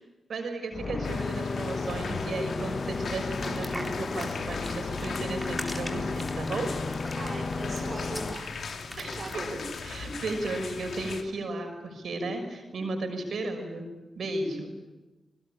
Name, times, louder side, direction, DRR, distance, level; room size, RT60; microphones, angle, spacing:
voice 1, 0.3-6.7 9.0-13.9 14.2-14.7, right 2 dB, 70° right, 5 dB, 6.2 m, -34 dB
sound 1, 0.7-8.3, left 3 dB, 45° left, 1.2 m, -33 dB
sound 2, 1.0-11.2, left 5 dB, 70° left, 2.5 m, -39 dB
sound 3, 3.4-9.9, equal, ahead, 4.0 m, -42 dB
voice 2, 7.2-8.5 9.2-9.6, right 3 dB, 50° right, -1 dB, 3.4 m, -39 dB
28.5 x 20.0 x 8.9 m, 1.1 s
supercardioid pair, 45°, 0 cm